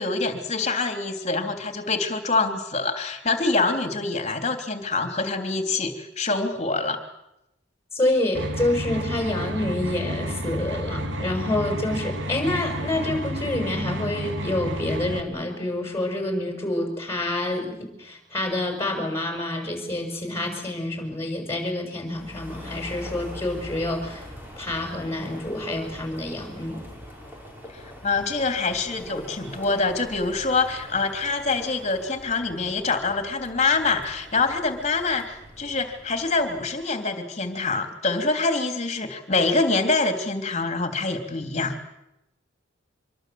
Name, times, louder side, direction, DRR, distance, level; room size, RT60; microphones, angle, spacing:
voice 1, 0.0-7.0 27.7-41.8, left 3 dB, 35° left, 6 dB, 3.3 m, -25 dB
voice 2, 7.9-24.2 24.6-26.8, left 1 dB, 15° left, 3 dB, 6.4 m, -27 dB
sound 1, 8.3-15.2, equal, 80° right, 2.4 m, -31 dB
sound 2, 22.0-36.7, equal, 10° right, 5.7 m, -43 dB
25.5 x 24.0 x 7.9 m, 0.86 s
head